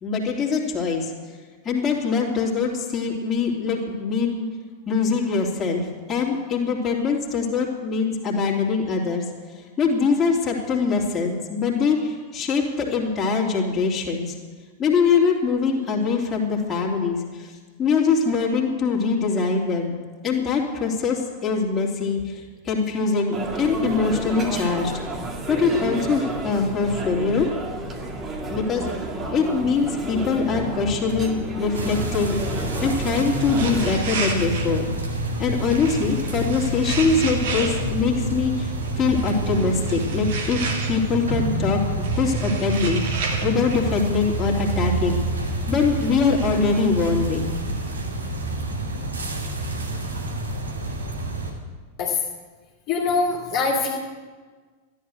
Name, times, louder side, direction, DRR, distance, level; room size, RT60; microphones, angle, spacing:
voice 1, 0.0-1.1 1.6-4.4 4.9-5.8 6.1-9.2 9.8-14.3 14.8-17.5 17.8-19.9 20.2-22.2 22.6-24.9 25.5-27.5 28.5-28.8 29.3-32.4 32.8-34.9 35.4-41.8 42.2-45.2 45.7-47.5, left 5 dB, 20° left, -2 dB, 3.1 m, -23 dB
sound 1, 23.3-33.9, right 2 dB, 20° right, 2.1 m, -31 dB
sound 2, 31.7-51.5, right 2 dB, 75° right, 2.5 m, -28 dB
sound 3, 32.2-48.0, right 4 dB, 55° right, 2.6 m, -35 dB
voice 2, 52.9-54.0, left 4 dB, 40° left, -3 dB, 2.6 m, -23 dB
14.0 x 11.5 x 7.9 m, 1.4 s
figure-of-eight pair, 90°, 0 cm